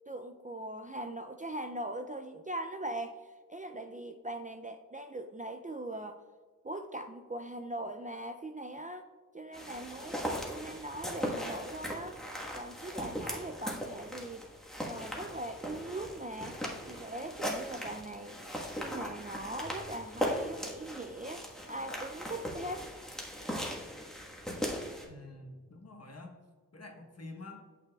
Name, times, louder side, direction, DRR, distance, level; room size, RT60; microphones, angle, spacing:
voice 1, 0.1-6.2 6.6-9.1 9.3-12.2 12.5-14.5 14.8-16.6 16.9-18.4 18.8-22.9, right 1 dB, 25° right, 6 dB, 0.4 m, -40 dB
sound 1, 9.5-25.1, equal, ahead, 1.4 m, -39 dB
voice 2, 25.0-26.3 26.7-27.6, left 2 dB, 45° left, 2 dB, 1.2 m, -47 dB
8.5 x 6.5 x 2.3 m, 1.4 s
wide cardioid pair, 60°, 35 cm